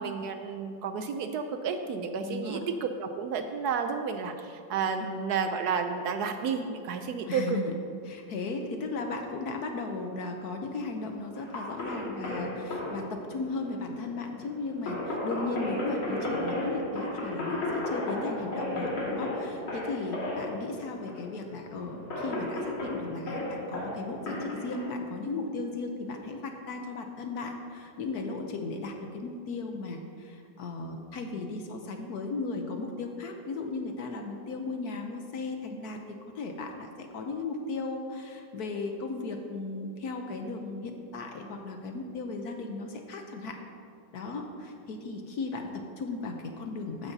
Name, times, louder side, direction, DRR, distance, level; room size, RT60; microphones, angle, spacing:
voice 1, 0.0-7.6, right 6 dB, 75° right, 7 dB, 0.9 m, -31 dB
voice 2, 2.3-2.6 7.3-7.7 8.0-36.0 36.3-43.6 44.1-47.1, left 3 dB, 65° left, 4 dB, 1.1 m, -36 dB
sound 1, 11.3-24.9, left 1 dB, 85° left, 2.9 m, -34 dB
14.0 x 9.5 x 2.7 m, 2.5 s
omnidirectional pair, 2.1 m